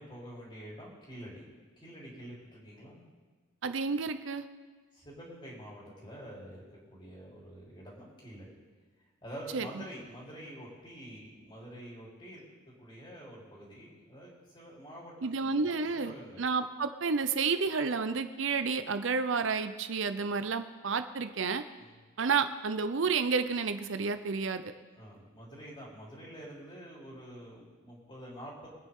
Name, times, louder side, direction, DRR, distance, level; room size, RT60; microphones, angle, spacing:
voice 1, 0.0-1.4 1.8-3.0 4.9-8.5 9.0-16.4 21.8-22.0 24.9-28.7, equal, 25° left, -5 dB, 3.8 m, -47 dB
voice 2, 3.6-4.4 9.5-9.7 15.2-21.6 22.2-24.6, right 5 dB, 70° right, 10 dB, 0.6 m, -30 dB
24.0 x 9.3 x 3.7 m, 1.4 s
head